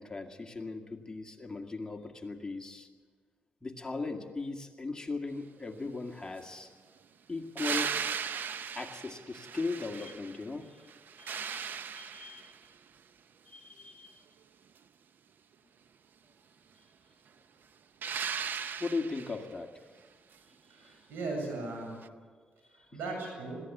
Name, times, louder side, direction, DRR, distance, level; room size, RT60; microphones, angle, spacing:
voice 1, 0.0-2.9 3.6-6.7 7.3-7.9 8.7-10.8 11.2-12.6 13.5-14.2 18.8-19.9 20.8-20.9 22.8-23.0, left 3 dB, 20° left, 3 dB, 2.2 m, -38 dB
sound 1, 7.6-10.5 10.9-12.6 18.0-19.5 22.0-22.1, right 7 dB, 65° right, 0.7 m, -37 dB
voice 2, 20.7-22.0 22.7-23.6, right 3 dB, 90° right, 2 dB, 7.5 m, -38 dB
21.5 x 15.5 x 8.6 m, 1.6 s
cardioid pair, 85°, 4 cm